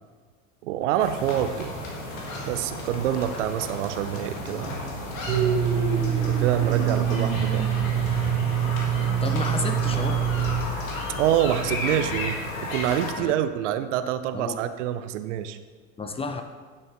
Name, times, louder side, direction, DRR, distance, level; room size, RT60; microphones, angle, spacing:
voice 1, 0.6-1.7 2.5-4.9 6.2-7.7 11.1-15.6, right 11 dB, 60° right, 12 dB, 0.6 m, -26 dB
sound 1, 1.0-13.1, left 1 dB, 70° left, 2.3 m, -33 dB
Domestic sounds home sounds, 5.3-10.6, right 9 dB, 75° right, 1.8 m, -24 dB
voice 2, 9.2-10.2 13.2-13.4 14.3-14.6 16.0-16.4, left 3 dB, 15° left, 6 dB, 0.6 m, -31 dB
11.0 x 7.9 x 3.4 m, 1.5 s
figure-of-eight pair, 80°, 42 cm